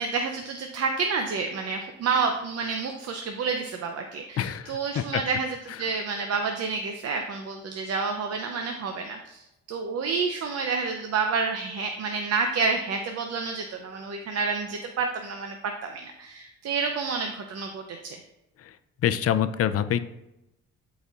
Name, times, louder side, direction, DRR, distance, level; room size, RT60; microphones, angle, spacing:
voice 1, 0.0-15.6 15.8-18.2, right 4 dB, 55° right, 4 dB, 0.7 m, -29 dB
voice 2, 4.4-5.2 19.0-20.0, left 10 dB, 50° left, 11 dB, 0.5 m, -25 dB
12.0 x 4.2 x 2.5 m, 0.92 s
cardioid pair, 90°, 30 cm